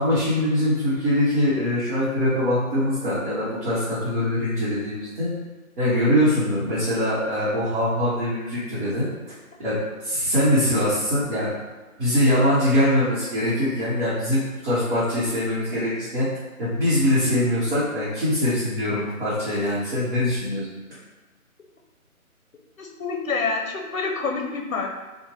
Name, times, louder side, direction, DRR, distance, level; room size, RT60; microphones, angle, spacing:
voice 1, 0.0-5.3 5.8-9.1 9.6-9.8 10.0-11.5 12.0-16.3 16.6-20.7, left 1 dB, 35° right, -12 dB, 1.0 m, -23 dB
voice 2, 22.8-24.9, left 4 dB, 65° left, 1 dB, 0.7 m, -27 dB
2.8 x 2.2 x 3.0 m, 1.2 s
figure-of-eight pair, 155°, 44 cm